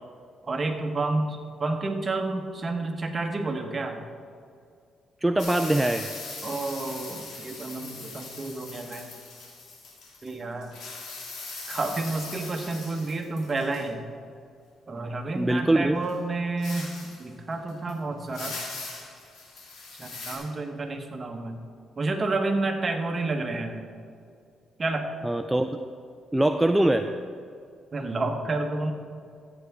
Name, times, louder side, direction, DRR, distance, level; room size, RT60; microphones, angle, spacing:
voice 1, 0.5-4.0 6.4-9.1 10.2-10.7 11.7-14.0 14.9-18.6 20.0-21.6 22.0-23.8 24.8-25.3 27.9-28.9, right 2 dB, 35° right, 4 dB, 1.2 m, -30 dB
voice 2, 5.2-6.1 15.3-16.0 25.2-25.8 26.3-27.1, right 1 dB, 10° right, 6 dB, 0.4 m, -23 dB
sound 1, 5.4-10.4 10.6-13.8 16.1-16.2 16.6-17.2 17.7-17.9 18.3-20.4, left 3 dB, 75° left, 2.6 m, -40 dB
14.0 x 8.1 x 3.6 m, 2.4 s
cardioid pair, 90°, 0 cm